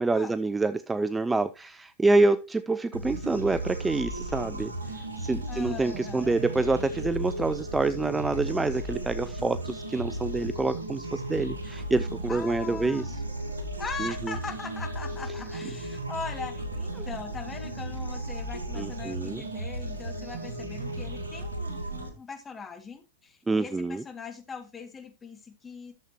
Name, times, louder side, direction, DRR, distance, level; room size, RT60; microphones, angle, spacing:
voice 1, 0.0-4.7 5.2-13.0 14.0-14.1 18.8-19.4 23.5-24.0, right 3 dB, 10° right, 0.4 m, -27 dB
sound 1, 2.9-22.1, right 1 dB, 85° right, 1.9 m, -35 dB
voice 2, 5.5-6.4 12.3-13.3 13.8-25.9, left 5 dB, 20° left, 1.9 m, -40 dB
12.5 x 7.3 x 2.8 m
figure-of-eight pair, 100°, 0 cm